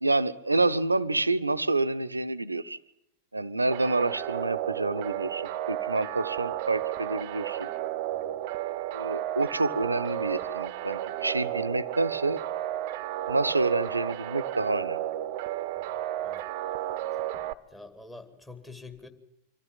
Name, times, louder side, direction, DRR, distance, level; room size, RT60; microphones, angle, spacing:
voice 1, 0.0-2.8 3.3-7.7 8.9-12.4 13.3-15.0, right 2 dB, 80° right, 13 dB, 0.8 m, -28 dB
sound 1, 3.7-17.5, right 13 dB, 50° right, 0.8 m, -33 dB
voice 2, 17.7-19.1, left 3 dB, 10° left, 7 dB, 2.5 m, -46 dB
25.0 x 14.5 x 8.9 m, 0.82 s
figure-of-eight pair, 90°, 0 cm